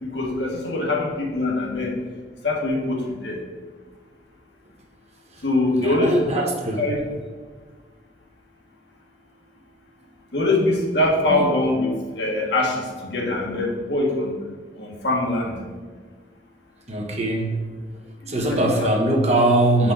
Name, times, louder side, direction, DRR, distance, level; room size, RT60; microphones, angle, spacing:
voice 1, 0.0-1.9 2.4-3.3 5.4-6.2 6.8-7.0 10.3-14.3 14.8-15.5 18.5-18.9, left 2 dB, 75° left, -1 dB, 1.6 m, -23 dB
voice 2, 5.8-6.8 11.3-11.5 16.9-17.7 18.3-19.9, right 1 dB, 40° right, 0 dB, 1.2 m, -21 dB
7.5 x 5.7 x 3.8 m, 1.5 s
head